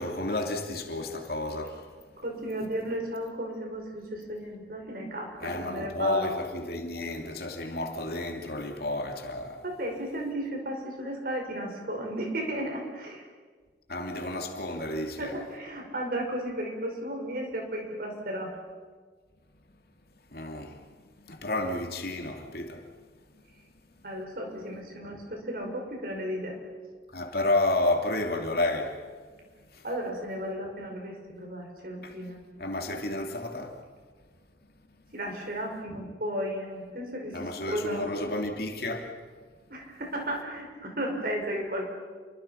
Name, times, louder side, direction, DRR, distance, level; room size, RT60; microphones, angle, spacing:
voice 1, 0.0-1.8 5.4-9.6 13.9-15.4 20.3-20.8 21.2-22.9 27.1-29.0 29.7-29.8 32.0-32.1 32.6-33.8 37.3-39.1, left 2 dB, 60° left, 2.9 m, -31 dB
voice 2, 2.2-6.4 9.6-13.2 15.2-18.5 24.0-26.6 29.8-32.4 33.1-33.2 35.1-38.3 39.7-41.9, right 1 dB, 55° right, 5.5 m, -34 dB
29.5 x 24.0 x 5.8 m
head